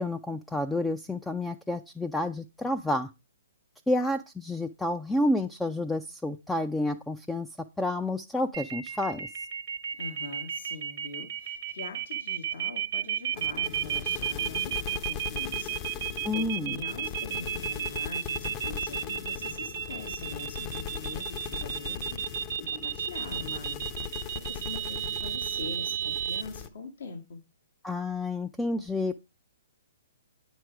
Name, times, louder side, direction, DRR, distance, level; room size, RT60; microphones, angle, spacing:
voice 1, 0.0-3.1 3.9-7.5 7.8-9.3 16.2-16.8 27.8-29.1, left 1 dB, 5° left, 6 dB, 0.5 m, -29 dB
sound 1, 8.5-26.4, right 10 dB, 55° right, 0.9 m, -32 dB
voice 2, 10.0-27.4, left 4 dB, 75° left, 4 dB, 1.9 m, -43 dB
sound 2, 13.3-26.7, left 8 dB, 30° left, 0.9 m, -39 dB
9.0 x 6.3 x 4.6 m, 0.26 s
hypercardioid pair, 135°, 0 cm